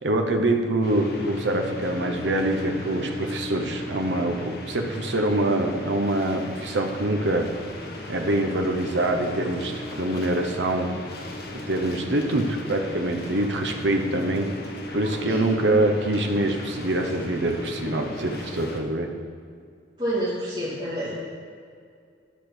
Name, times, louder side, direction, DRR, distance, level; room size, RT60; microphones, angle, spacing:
voice 1, 0.0-7.5 8.1-10.9 11.7-14.5 14.9-19.1, right 1 dB, 75° right, 3 dB, 0.9 m, -25 dB
sound 1, 0.8-18.8, left 1 dB, 60° left, 1.2 m, -36 dB
voice 2, 20.0-21.1, right 1 dB, 30° right, -14 dB, 2.8 m, -28 dB
11.0 x 5.1 x 6.1 m, 2.3 s
head